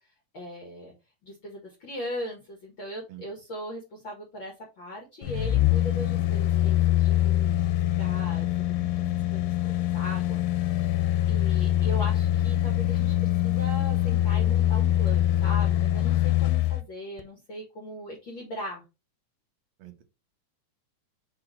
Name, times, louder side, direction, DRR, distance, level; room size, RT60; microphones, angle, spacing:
voice 1, 0.3-0.9 1.2-7.6 8.0-9.0 9.3-18.8, equal, 45° left, 0 dB, 1.7 m, -39 dB
sound 1, 5.2-16.8 17.2-17.3, left 13 dB, 90° left, 2.3 m, -24 dB
voice 2, 8.8-9.2 11.6-11.9 19.8-20.0, right 14 dB, 65° right, 6 dB, 1.7 m, -47 dB
5.1 x 4.9 x 4.5 m, 0.27 s
omnidirectional pair, 3.8 m